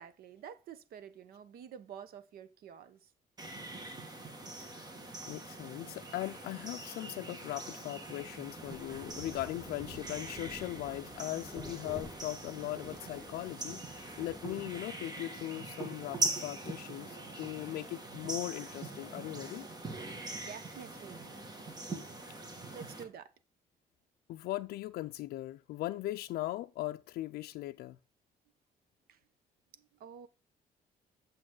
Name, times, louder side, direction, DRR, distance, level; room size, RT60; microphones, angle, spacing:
voice 1, 0.0-3.1 20.3-21.5 22.7-23.3 29.1-29.2 29.7-30.3, right 8 dB, 75° right, 1.0 m, -49 dB
sound 1, 3.4-23.0, right 2 dB, 25° right, 1.9 m, -42 dB
voice 2, 4.6-19.7 22.5-22.8 24.3-28.0, left 16 dB, 85° left, 0.4 m, -39 dB
Rain, 8.0-15.2, left 1 dB, 10° right, 5.3 m, -50 dB
8.7 x 6.8 x 3.8 m
cardioid pair, 120°, 16 cm